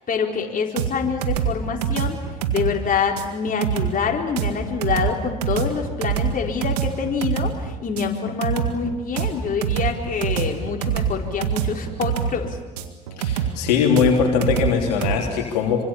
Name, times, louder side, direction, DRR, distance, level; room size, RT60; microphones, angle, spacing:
voice 1, 0.0-2.2 2.5-12.6, left 6 dB, 45° left, 1 dB, 4.1 m, -26 dB
sound 1, 0.8-15.2, right 9 dB, 85° right, 1.9 m, -25 dB
voice 2, 13.2-15.8, left 6 dB, 80° left, 1 dB, 3.4 m, -20 dB
26.0 x 25.0 x 7.2 m, 1.1 s
hypercardioid pair, 60°, 20 cm